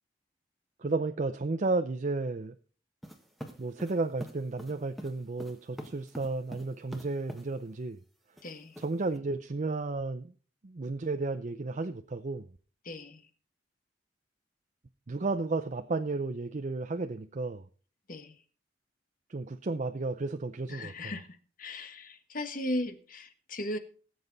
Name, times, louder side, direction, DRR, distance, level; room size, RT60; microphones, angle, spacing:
voice 1, 0.8-2.5 3.6-8.0 8.8-10.3 10.6-12.4 15.1-17.6 19.3-21.1, right 3 dB, 45° right, 8 dB, 0.6 m, -33 dB
sound 1, 3.0-7.5 8.4-9.2, equal, ahead, 1.5 m, -44 dB
voice 2, 8.4-8.8 12.8-13.3 18.1-18.4 20.7-21.3 21.6-23.8, left 1 dB, 50° left, 9 dB, 1.4 m, -37 dB
19.0 x 7.9 x 4.0 m, 0.41 s
head